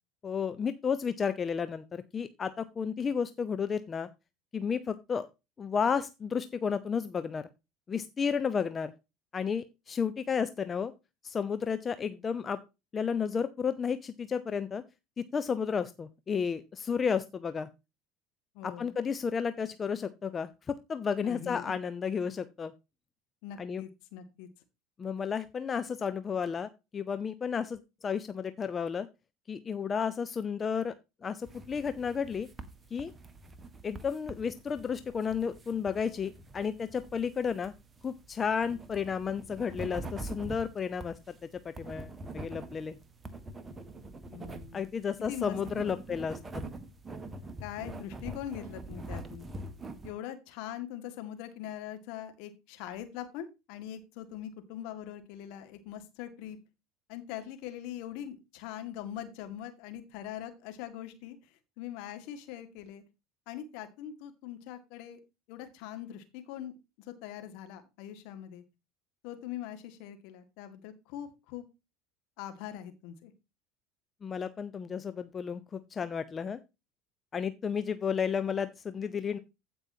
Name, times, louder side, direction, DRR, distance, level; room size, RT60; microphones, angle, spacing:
voice 1, 0.2-4.1 4.5-5.3 5.6-7.5 7.9-8.9 9.3-10.9 11.2-12.6 12.9-14.8 15.2-17.7 18.6-22.7 23.6-23.8 25.0-29.1 29.5-30.9 31.2-32.5 32.9-33.1 33.8-37.7 38.0-43.0 44.7-46.4 74.2-76.6 77.3-79.4, left 6 dB, 30° left, 12 dB, 0.7 m, -32 dB
voice 2, 18.5-18.9 21.2-21.7 23.4-24.5 44.3-44.9 45.3-46.0 47.6-49.5 50.0-56.6 57.1-61.4 61.8-63.0 63.5-65.2 65.5-66.7 67.1-68.6 69.2-71.6 72.4-73.3, left 11 dB, 65° left, 8 dB, 1.9 m, -42 dB
sound 1, 31.4-50.1, right 2 dB, 20° right, 1.5 m, -45 dB
15.5 x 5.4 x 2.8 m, 0.25 s
hypercardioid pair, 70°, 0 cm